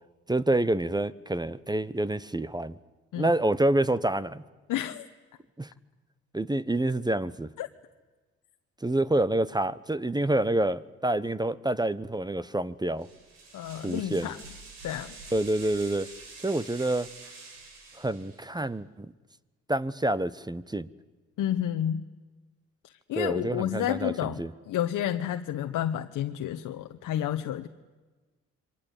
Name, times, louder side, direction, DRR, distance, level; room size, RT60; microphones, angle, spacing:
voice 1, 0.3-2.7 3.2-4.4 5.6-5.7 6.3-7.5 8.8-13.1 13.8-14.3 15.3-16.1 16.4-17.1 18.0-19.1 19.7-20.9 23.1-24.1 24.4-24.5, right 1 dB, 10° right, 17 dB, 1.1 m, -27 dB
voice 2, 4.7-5.1 7.6-7.7 13.5-14.4 14.8-15.2 21.4-22.1 22.8-27.7, left 11 dB, 65° left, 6 dB, 1.2 m, -30 dB
sound 1, 13.0-18.6, right 3 dB, 80° right, 6.7 m, -47 dB
27.5 x 24.0 x 8.4 m, 1.3 s
hypercardioid pair, 50°, 33 cm